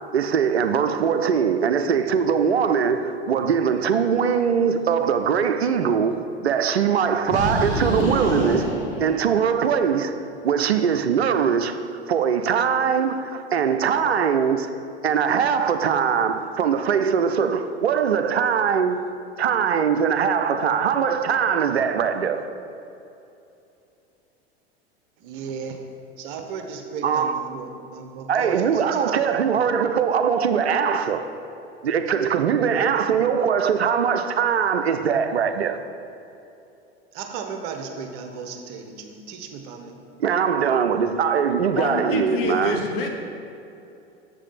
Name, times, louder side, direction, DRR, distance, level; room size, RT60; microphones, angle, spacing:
voice 1, 0.1-8.7 9.0-10.1 10.4-11.8 12.1-14.7 15.0-19.1 19.4-22.4 27.0-27.5 28.3-31.2 31.8-35.8 40.2-42.8, right 7 dB, 80° right, 0.5 m, -21 dB
sound 1, 7.3-9.7, equal, 35° left, 1.8 m, -26 dB
voice 2, 25.2-25.8 26.2-28.6 28.9-29.0 37.1-39.9, right 6 dB, 50° right, 1.0 m, -35 dB
voice 3, 41.7-43.1, left 4 dB, 60° left, 1.3 m, -27 dB
7.5 x 4.9 x 5.6 m
figure-of-eight pair, 85°, 31 cm